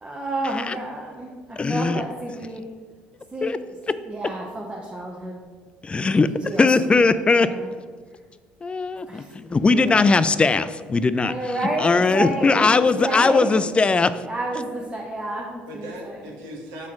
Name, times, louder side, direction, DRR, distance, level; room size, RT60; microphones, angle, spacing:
voice 1, 0.0-2.6 3.3-3.6 4.1-5.4 6.4-7.1 7.4-7.7 9.1-9.6 9.8-10.0 11.2-13.5 14.3-15.9, right 1 dB, 20° right, -2 dB, 0.8 m, -30 dB
voice 2, 1.6-2.0 3.4-3.6 3.9-4.0 5.8-7.5 8.6-14.2, left 4 dB, 25° left, 13 dB, 0.3 m, -20 dB
voice 3, 12.6-13.3 15.7-16.9, right 1 dB, 80° right, 1 dB, 1.1 m, -38 dB
6.2 x 4.2 x 3.6 m, 1.5 s
hypercardioid pair, 70°, 5 cm